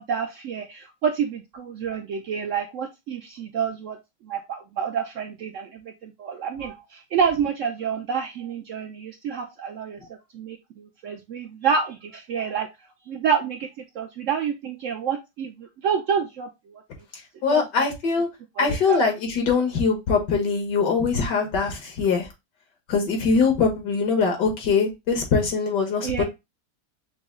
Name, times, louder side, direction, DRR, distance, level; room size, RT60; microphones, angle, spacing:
voice 1, 0.0-12.7 13.1-13.7 14.0-16.8 17.5-17.7 18.6-19.0 26.0-26.2, right 7 dB, 75° right, 5 dB, 0.7 m, -28 dB
voice 2, 17.4-18.3 18.6-22.3 22.9-26.2, left 5 dB, 85° left, 2 dB, 2.0 m, -22 dB
5.9 x 2.0 x 3.6 m, 0.22 s
omnidirectional pair, 1.8 m